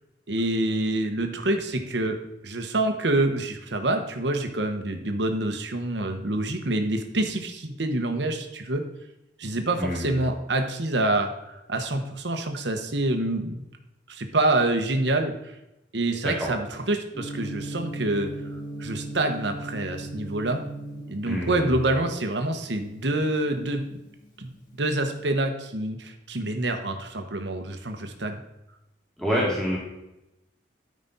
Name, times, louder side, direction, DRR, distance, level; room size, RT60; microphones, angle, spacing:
voice 1, 0.3-2.2 2.4-8.8 9.4-13.6 14.1-15.3 15.9-18.3 18.8-20.6 21.1-24.0 24.4-28.4, right 2 dB, 70° right, 5 dB, 1.2 m, -27 dB
voice 2, 9.8-10.1 16.2-16.5 21.3-21.7 29.2-29.8, equal, 5° left, -6 dB, 2.0 m, -27 dB
Gong, 17.1-25.2, right 1 dB, 45° left, 2.4 m, -38 dB
13.0 x 5.3 x 4.1 m, 0.91 s
head